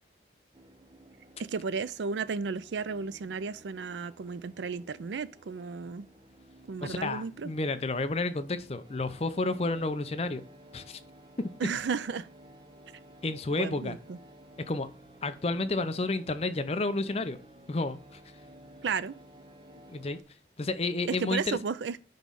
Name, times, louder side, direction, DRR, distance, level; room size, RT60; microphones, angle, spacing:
sound 1, 0.5-20.2, right 1 dB, 25° right, 0.7 m, -54 dB
voice 1, 1.4-6.1 6.7-7.5 11.6-12.3 13.6-14.2 18.8-19.2 21.1-22.0, right 5 dB, 75° right, 0.4 m, -33 dB
voice 2, 6.8-10.4 10.7-11.0 11.4-11.5 13.2-14.0 14.7-14.9 15.2-17.4 17.7-18.2 19.9-20.2 20.6-21.6, left 2 dB, 35° left, 0.5 m, -31 dB
9.2 x 3.2 x 5.4 m
head